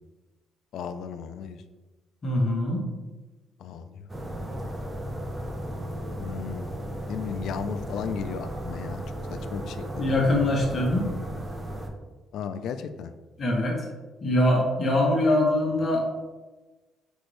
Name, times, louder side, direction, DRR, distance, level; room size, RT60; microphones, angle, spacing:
voice 1, 0.7-1.6 3.6-4.0 6.2-6.7 7.1-9.0 9.3-10.1 12.3-13.1, left 7 dB, 65° left, 10 dB, 0.3 m, -35 dB
voice 2, 2.2-2.9 10.0-11.1 13.4-13.8 14.2-16.2, left 1 dB, 30° left, -2 dB, 1.1 m, -23 dB
sound 1, 4.1-11.9, right 1 dB, 15° right, 0.5 m, -35 dB
5.9 x 2.6 x 3.2 m, 1.2 s
cardioid pair, 150°, 0 cm